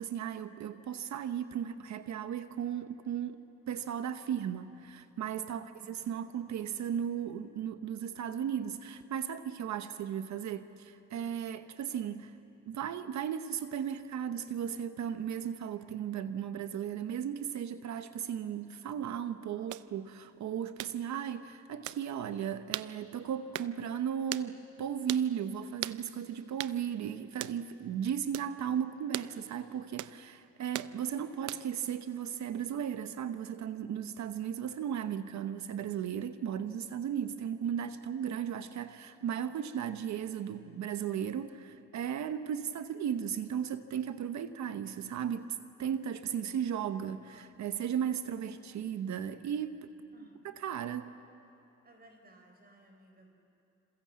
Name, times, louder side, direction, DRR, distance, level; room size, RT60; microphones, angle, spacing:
voice 1, 0.0-3.4 3.7-12.4 12.7-49.9 50.4-51.1, right 8 dB, 65° right, 10 dB, 1.0 m, -36 dB
voice 2, 5.4-5.8 50.1-50.4 51.8-53.3, right 1 dB, 30° right, 4 dB, 4.5 m, -59 dB
sound 1, 19.7-19.9 20.8-21.0 21.9-22.0 22.7-22.9 23.5-23.7 24.3-24.5 25.1-25.3 25.8-26.0 26.6-26.8 27.4-27.6 28.3-28.5 29.1-29.3 30.0-30.2 30.7-30.9 31.5-31.8, right 15 dB, 80° right, 0.6 m, -38 dB
28.5 x 27.0 x 7.5 m, 2.7 s
cardioid pair, 90°, 30 cm